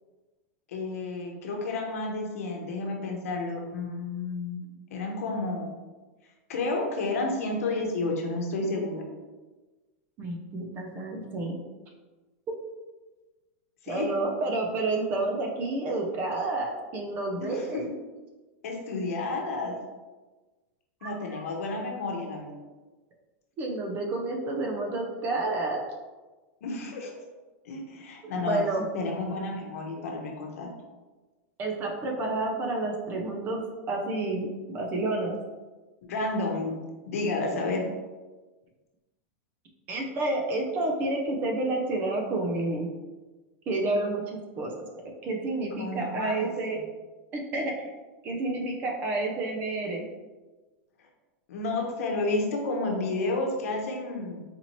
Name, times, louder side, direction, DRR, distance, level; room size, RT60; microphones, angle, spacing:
voice 1, 0.7-5.7 6.5-9.0 13.8-14.1 17.4-17.8 18.6-19.7 21.0-22.5 26.6-27.1 27.6-28.6 28.9-30.7 36.0-36.7 37.1-37.8 45.8-46.8 51.5-54.4, left 2 dB, 80° left, 1 dB, 0.9 m, -31 dB
voice 2, 10.2-11.6 13.9-17.9 21.0-21.4 23.6-25.8 28.3-28.8 31.6-33.6 33.9-35.4 39.9-42.9 43.7-44.9 45.2-46.8 47.3-47.9 48.2-50.0, right 2 dB, 25° right, 1 dB, 0.5 m, -30 dB
4.1 x 2.7 x 3.0 m, 1.2 s
supercardioid pair, 165°, 8 cm